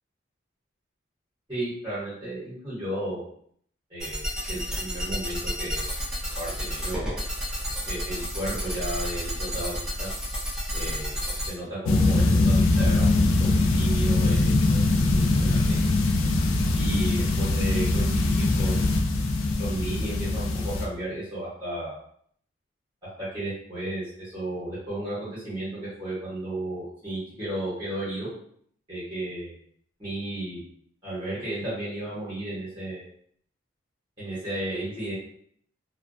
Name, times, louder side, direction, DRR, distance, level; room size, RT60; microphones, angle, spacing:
voice 1, 1.5-3.2 3.9-5.9 6.4-7.2 7.9-10.1 10.7-11.2 11.5-15.6 16.7-18.9 19.6-22.0 23.2-28.3 28.9-29.6 30.0-30.6 31.0-33.1 34.2-35.1, right 1 dB, 25° right, -11 dB, 1.0 m, -34 dB
sound 1, 4.0-11.5, equal, 5° right, 0.5 m, -31 dB
sound 2, 11.9-20.9, left 2 dB, 90° left, 0.4 m, -22 dB
2.2 x 2.2 x 2.5 m, 0.64 s
head